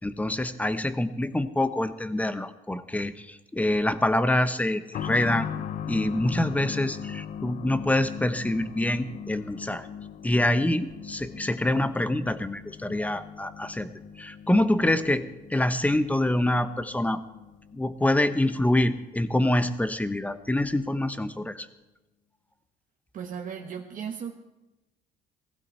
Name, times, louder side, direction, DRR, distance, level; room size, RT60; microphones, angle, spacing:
voice 1, 0.0-5.5 5.9-9.9 10.2-13.9 14.2-17.2 17.7-21.7, left 1 dB, 10° left, 12 dB, 0.8 m, -26 dB
sound 1, 4.9-19.4 19.6-19.7 20.7-20.8, left 8 dB, 45° left, 0.5 m, -39 dB
voice 2, 23.1-24.4, right 7 dB, 50° right, 2 dB, 1.2 m, -36 dB
16.0 x 15.5 x 4.4 m, 1.0 s
cardioid pair, 110°, 17 cm